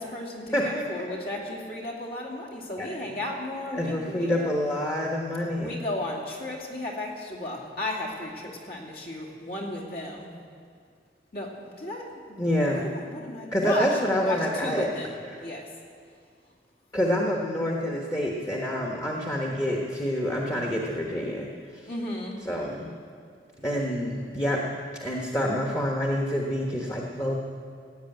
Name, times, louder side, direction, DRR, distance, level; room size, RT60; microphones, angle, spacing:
voice 1, 0.0-4.5 5.5-10.3 11.3-12.4 12.7-15.7 21.9-22.4, left 1 dB, 60° left, -1 dB, 2.7 m, -34 dB
voice 2, 0.5-1.1 2.8-2.9 3.7-5.8 12.4-12.9 13.5-14.9 16.9-21.9 22.4-22.9 23.6-24.6 25.0-27.3, equal, 20° left, -1 dB, 1.2 m, -27 dB
16.5 x 8.3 x 9.0 m, 2.2 s
head